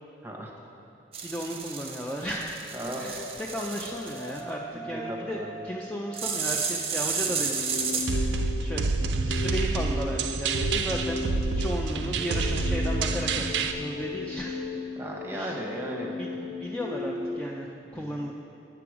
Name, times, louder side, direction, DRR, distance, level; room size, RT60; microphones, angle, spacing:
voice 1, 0.2-0.6 2.7-3.1 4.9-5.5 15.0-16.1 17.9-18.2, right 1 dB, 15° right, -1 dB, 1.0 m, -36 dB
sound 1, 1.1-4.4 6.1-8.1, right 6 dB, 35° right, 0.7 m, -32 dB
voice 2, 1.2-2.6 3.0-8.9 9.2-11.3 11.5-14.6 15.3-15.6 16.0-18.3, equal, 5° left, -2 dB, 0.4 m, -35 dB
sound 2, 3.0-17.4, left 2 dB, 55° left, 0.9 m, -37 dB
sound 3, 8.1-13.7, right 4 dB, 65° right, 0.4 m, -28 dB
8.5 x 6.8 x 4.8 m, 2.7 s
head